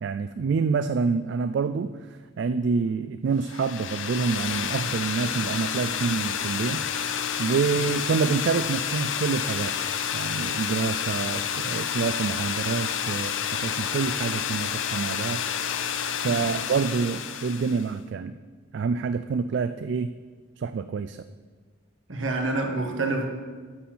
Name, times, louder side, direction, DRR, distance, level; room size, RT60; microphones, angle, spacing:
voice 1, 0.0-6.8 7.4-15.5 16.2-18.4 18.7-20.1 20.6-21.2, right 5 dB, 60° right, 11 dB, 0.3 m, -27 dB
sound 1, 3.4-17.9, left 8 dB, 70° left, 0.6 m, -29 dB
voice 2, 22.1-23.3, right 2 dB, 75° right, 3 dB, 1.4 m, -28 dB
11.0 x 4.3 x 7.6 m, 1.5 s
head